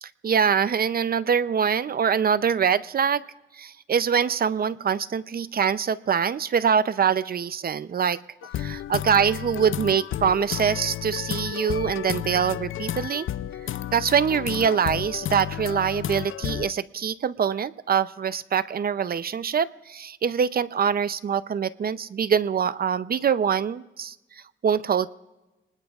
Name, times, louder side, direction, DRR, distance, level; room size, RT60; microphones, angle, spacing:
voice 1, 0.0-3.2 3.5-8.2 8.6-13.3 13.9-25.1, right 7 dB, 45° right, 15 dB, 0.5 m, -24 dB
sound 1, 8.4-16.7, left 11 dB, 70° left, 0.4 m, -32 dB
27.0 x 19.5 x 2.4 m, 1.1 s
cardioid pair, 110°, 21 cm